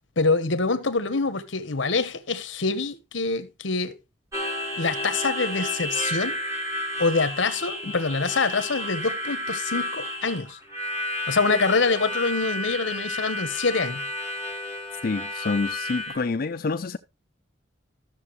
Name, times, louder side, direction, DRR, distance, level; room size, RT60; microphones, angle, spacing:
voice 1, 0.2-3.9 4.8-6.4 7.0-10.6 11.3-14.0, left 4 dB, 80° left, 1.1 m, -25 dB
Harmonica, 4.3-16.1, left 1 dB, 15° right, 2.4 m, -31 dB
voice 2, 15.0-17.0, left 4 dB, 50° left, 0.5 m, -27 dB
13.5 x 6.9 x 3.1 m
head